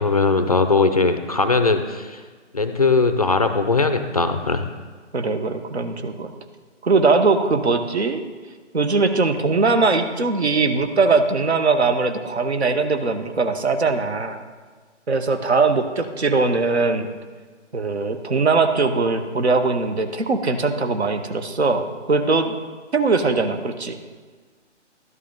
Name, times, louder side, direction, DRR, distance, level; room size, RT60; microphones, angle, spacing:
voice 1, 0.0-2.2 2.5-4.7, left 3 dB, 35° left, 8 dB, 0.5 m, -19 dB
voice 2, 5.1-6.3 6.8-8.2 8.7-14.4 15.1-17.1 17.7-22.6 22.9-24.0, right 3 dB, 65° right, 8 dB, 1.1 m, -20 dB
12.5 x 11.5 x 3.8 m, 1.5 s
figure-of-eight pair, 140°, 36 cm